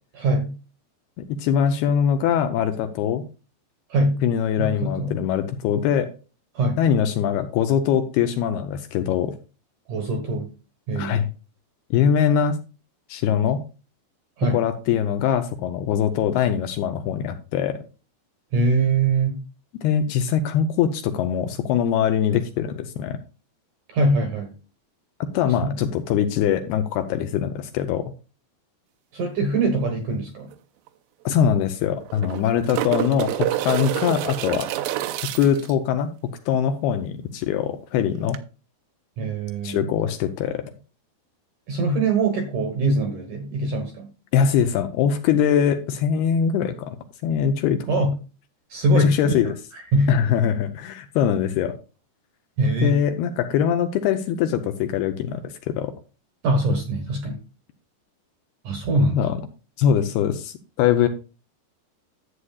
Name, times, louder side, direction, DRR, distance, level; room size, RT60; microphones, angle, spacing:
voice 1, 0.1-0.5 3.9-4.2 4.6-5.2 6.5-6.8 9.9-10.5 10.9-11.2 14.4-14.6 18.5-19.4 23.9-24.6 25.6-25.8 29.1-30.5 39.2-39.9 41.7-44.1 47.9-48.1 48.7-49.4 49.7-50.1 52.6-53.0 56.4-57.4 58.6-59.2, right 2 dB, 65° right, 4 dB, 2.0 m, -23 dB
voice 2, 1.2-3.3 4.2-6.1 6.8-9.4 11.0-11.3 11.9-12.6 13.1-13.6 14.5-17.8 19.8-23.2 25.3-28.0 31.3-34.7 35.3-36.1 36.5-38.4 39.6-40.6 44.3-47.0 47.2-47.8 48.9-49.5 50.1-51.8 52.8-55.4 55.7-55.9 59.1-59.3 59.8-61.1, left 8 dB, 80° left, 7 dB, 2.4 m, -22 dB
sound 1, 30.5-30.6 30.9-31.0 32.0-35.7 38.3-38.4, right 14 dB, 85° right, 2.9 m, -27 dB
11.0 x 8.1 x 2.3 m, 0.32 s
omnidirectional pair, 5.0 m